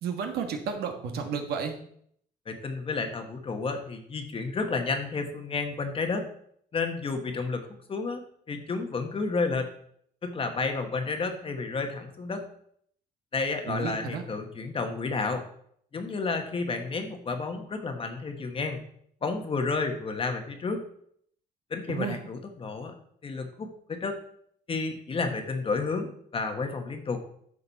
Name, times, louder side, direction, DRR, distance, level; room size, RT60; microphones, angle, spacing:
voice 1, 0.0-1.8 13.7-14.2 21.9-22.2, right 6 dB, 70° right, 4 dB, 1.6 m, -32 dB
voice 2, 2.5-6.3 6.7-9.7 10.2-12.4 13.3-15.4 15.9-18.8 19.2-20.8 21.7-22.9 23.2-24.2 24.7-27.2, left 4 dB, 35° left, 5 dB, 1.4 m, -31 dB
10.0 x 6.4 x 4.1 m, 0.66 s
cardioid pair, 110°, 17 cm